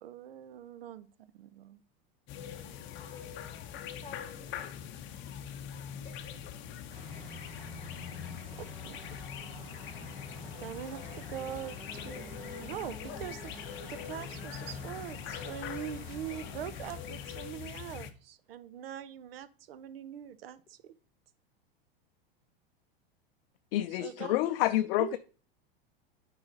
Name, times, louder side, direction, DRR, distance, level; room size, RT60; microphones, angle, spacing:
voice 1, 0.0-1.8 2.5-2.6 3.1-3.2 8.6-9.0 10.6-20.9 23.9-24.6 25.0-25.2, right 10 dB, 80° right, 14 dB, 0.8 m, -43 dB
sound 1, 2.3-18.1, left 9 dB, 40° left, 0.9 m, -43 dB
voice 2, 3.0-4.9 6.0-6.5, left 4 dB, 20° left, 1 dB, 2.3 m, -53 dB
sound 2, 6.9-17.5, right 2 dB, 25° right, 2.0 m, -50 dB
voice 3, 23.7-25.2, left 15 dB, 65° left, 11 dB, 0.5 m, -28 dB
8.4 x 4.9 x 3.9 m, 0.39 s
hypercardioid pair, 115°, 29 cm